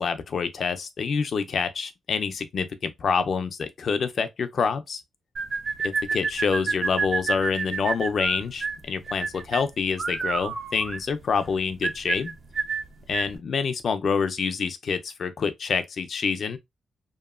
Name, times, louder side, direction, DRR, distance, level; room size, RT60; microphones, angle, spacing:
voice 1, 0.0-5.0 6.1-12.3 13.1-16.6, left 5 dB, 60° left, 0.4 m, -27 dB
sound 1, 5.4-13.4, right 4 dB, 55° right, 0.7 m, -30 dB
2.8 x 2.4 x 2.2 m
cardioid pair, 100°, 0 cm